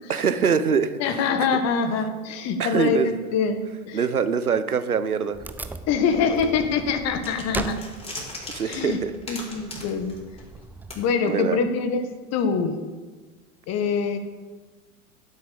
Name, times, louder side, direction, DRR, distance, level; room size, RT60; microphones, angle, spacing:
voice 1, 0.1-1.0 2.6-3.2 3.9-5.4 8.5-9.1 11.2-11.6, right 6 dB, 85° right, 12 dB, 1.1 m, -23 dB
voice 2, 1.0-4.0 5.9-7.8 8.6-9.0 9.3-10.2 11.0-12.8 13.7-14.2, left 5 dB, 35° left, 8 dB, 1.9 m, -24 dB
Wood, 5.3-11.1, right 3 dB, 5° right, 0.4 m, -38 dB
sound 1, 7.2-10.6 10.9-11.0, left 1 dB, 15° left, 4.6 m, -38 dB
15.5 x 8.3 x 7.1 m, 1.3 s
figure-of-eight pair, 95°, 43 cm